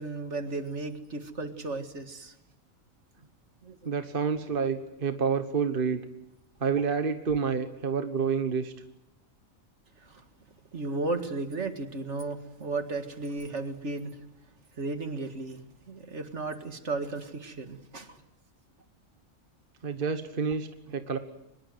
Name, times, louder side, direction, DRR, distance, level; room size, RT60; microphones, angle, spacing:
voice 1, 0.0-2.3 3.6-3.8 10.0-10.2 10.7-14.2 14.8-18.2 20.9-21.0, right 3 dB, 60° right, 8 dB, 2.2 m, -35 dB
voice 2, 3.8-6.0 6.6-8.7 19.8-21.2, right 6 dB, 40° right, 8 dB, 1.4 m, -28 dB
24.5 x 21.5 x 7.9 m, 0.90 s
omnidirectional pair, 1.4 m